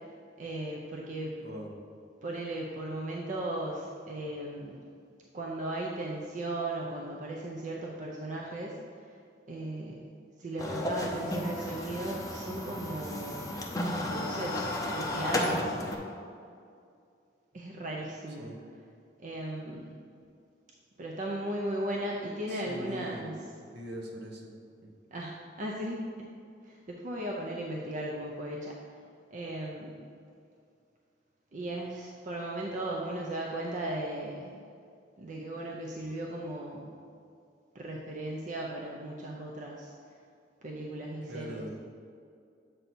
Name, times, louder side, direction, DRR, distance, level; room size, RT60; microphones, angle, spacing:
voice 1, 0.4-1.4 2.2-4.8 5.3-8.8 9.0-9.1 9.5-10.0 10.4-13.5 13.9-15.8 17.5-18.5 19.2-19.9 21.0-23.4 25.1-26.3 26.6-28.8 29.3-30.0 31.5-34.5 35.2-36.9 37.7-39.9 40.6-41.7, right 1 dB, 45° right, -2 dB, 0.5 m, -36 dB
sound 1, 10.6-16.0, left 1 dB, 20° left, 0.6 m, -33 dB
voice 2, 22.5-23.3 23.7-24.5 24.8-24.9 41.3-41.7, equal, 65° right, 0 dB, 1.0 m, -42 dB
7.8 x 2.7 x 5.9 m, 2.4 s
head